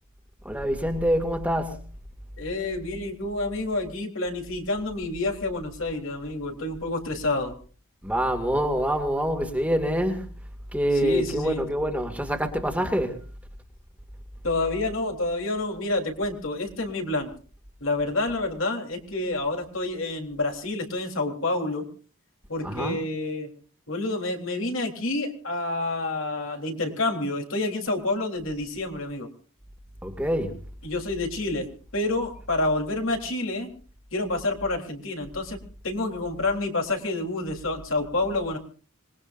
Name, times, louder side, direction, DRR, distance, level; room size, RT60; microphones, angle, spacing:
voice 1, 0.4-1.8 8.0-10.3 10.7-13.2 22.6-23.0 30.0-30.6, equal, 5° right, 2.2 m, -25 dB
voice 2, 2.4-7.5 11.0-11.6 14.4-17.3 17.8-21.9 22.5-23.5 23.9-29.3 30.8-31.7 31.9-33.7 34.1-35.6 35.8-38.6, left 2 dB, 65° left, 3.6 m, -28 dB
26.0 x 21.0 x 2.6 m
head